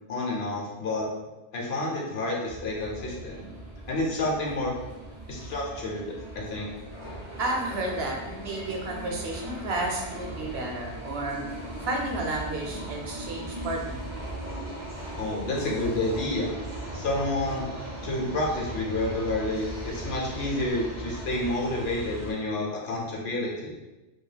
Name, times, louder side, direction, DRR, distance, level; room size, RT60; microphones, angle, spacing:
voice 1, 0.1-1.1 1.5-3.5 3.9-4.7 5.3-6.7 15.2-16.5 16.9-17.7 18.0-23.7, left 2 dB, 70° left, -2 dB, 0.9 m, -29 dB
sound 1, 2.5-22.3, right 1 dB, 30° right, 0.3 m, -38 dB
voice 2, 7.4-11.4 11.9-14.0, right 2 dB, 70° right, 0 dB, 0.8 m, -31 dB
2.3 x 2.2 x 3.2 m, 1.1 s
omnidirectional pair, 1.1 m